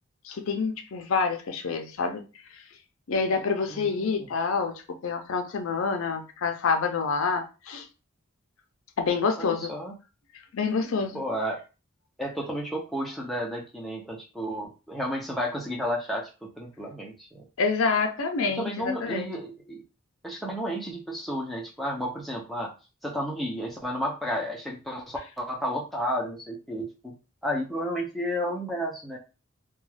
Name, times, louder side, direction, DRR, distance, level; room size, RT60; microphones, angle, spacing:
voice 1, 0.2-2.2 3.1-7.9 9.0-9.7 10.5-11.2 17.6-19.3, left 5 dB, 75° left, 0.5 m, -27 dB
voice 2, 3.7-4.3 9.4-9.9 11.1-11.6 12.2-16.3 16.6-17.4 18.5-19.8 20.2-22.7 23.0-27.1 27.4-29.2, equal, ahead, 0.4 m, -32 dB
2.3 x 2.2 x 3.2 m
head